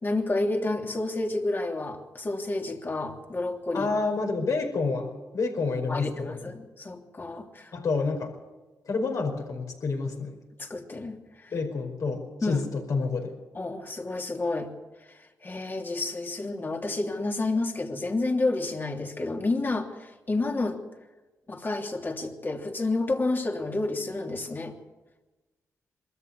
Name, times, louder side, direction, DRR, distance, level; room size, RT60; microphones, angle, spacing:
voice 1, 0.0-3.9 5.9-7.7 10.6-11.5 12.4-12.6 13.5-14.7 15.4-20.8 21.5-24.7, left 2 dB, 35° left, 2 dB, 3.1 m, -30 dB
voice 2, 3.7-6.5 7.7-8.3 8.8-10.4 11.5-13.3, left 4 dB, 60° left, 3 dB, 5.0 m, -29 dB
22.5 x 13.5 x 8.4 m, 1.2 s
cardioid pair, 60°, 6 cm